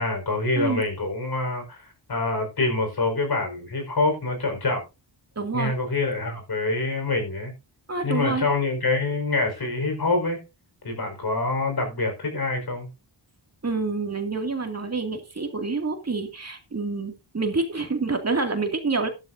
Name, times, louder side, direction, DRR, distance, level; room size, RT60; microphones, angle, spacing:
voice 1, 0.0-4.8 5.5-7.5 8.0-10.4 10.8-12.9, left 3 dB, 50° left, 5.0 m, -26 dB
voice 2, 5.4-5.7 7.9-8.5 13.6-19.1, right 3 dB, 30° right, 2.5 m, -27 dB
13.0 x 12.5 x 2.7 m
wide cardioid pair, 105°, 47 cm